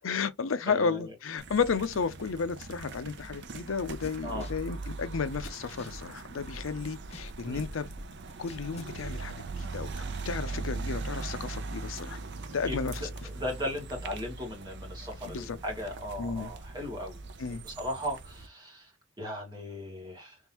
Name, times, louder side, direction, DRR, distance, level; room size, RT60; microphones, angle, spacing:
voice 1, 0.0-7.9 8.4-9.3 9.7-12.2 12.5-13.1 15.3-15.6 16.2-16.5 17.4-17.6, left 5 dB, 80° left, 0.5 m, -33 dB
voice 2, 0.7-1.1 4.2-4.5 7.4-7.6 10.5-10.7 12.6-17.2 17.6-18.9 19.2-20.4, left 1 dB, 20° right, 2.1 m, -37 dB
sound 1, 1.4-18.5, right 3 dB, 60° right, 0.6 m, -40 dB
sound 2, 3.8-6.8 7.1-9.0, left 1 dB, 35° left, 1.0 m, -45 dB
3.6 x 3.5 x 2.9 m
head